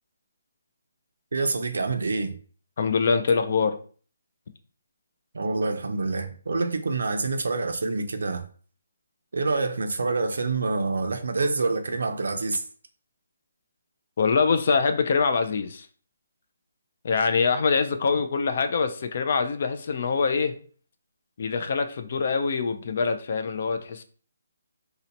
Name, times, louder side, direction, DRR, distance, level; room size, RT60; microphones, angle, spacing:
voice 1, 1.3-2.4 5.3-8.4 9.3-12.6, right 3 dB, 70° right, 0.5 m, -27 dB
voice 2, 2.8-3.8 14.2-15.9 17.0-20.5 21.4-24.0, left 5 dB, 40° left, 0.3 m, -24 dB
2.8 x 2.1 x 4.0 m
hypercardioid pair, 175°, 0 cm